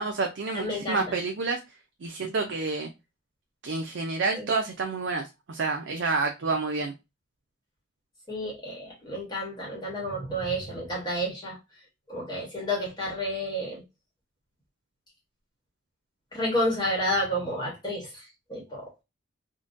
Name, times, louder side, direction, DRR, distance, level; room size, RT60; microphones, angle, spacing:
voice 1, 0.0-1.6 2.0-2.9 3.6-6.9, right 3 dB, 65° right, 0.5 m, -29 dB
voice 2, 0.5-1.2 4.3-4.5 8.3-11.6 12.1-13.8 16.3-18.9, equal, 20° left, 1.1 m, -30 dB
3.7 x 2.2 x 2.5 m
head